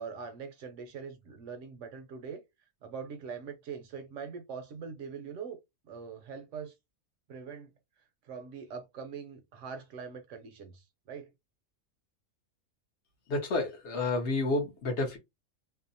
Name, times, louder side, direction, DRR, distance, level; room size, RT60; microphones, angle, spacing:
voice 1, 0.0-2.4 2.8-5.6 5.8-6.7 7.3-7.7 8.2-11.3, right 6 dB, 65° right, 0.8 m, -42 dB
voice 2, 13.3-15.2, left 2 dB, 60° left, 0.9 m, -30 dB
2.6 x 2.0 x 2.6 m
omnidirectional pair, 1.5 m